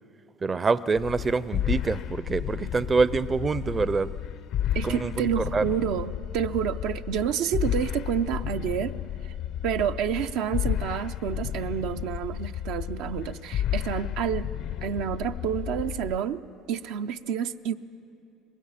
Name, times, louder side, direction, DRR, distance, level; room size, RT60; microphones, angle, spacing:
voice 1, 0.4-4.1 4.8-5.6, right 4 dB, 30° right, 16 dB, 0.5 m, -26 dB
sound 1, 0.9-16.2, left 11 dB, 65° left, 0.6 m, -32 dB
voice 2, 4.7-8.9 9.2-9.3 9.6-14.5 14.8-16.4 16.7-17.7, right 9 dB, 75° right, 8 dB, 0.5 m, -29 dB
24.0 x 20.0 x 5.7 m, 2.8 s
supercardioid pair, 90°, 0 cm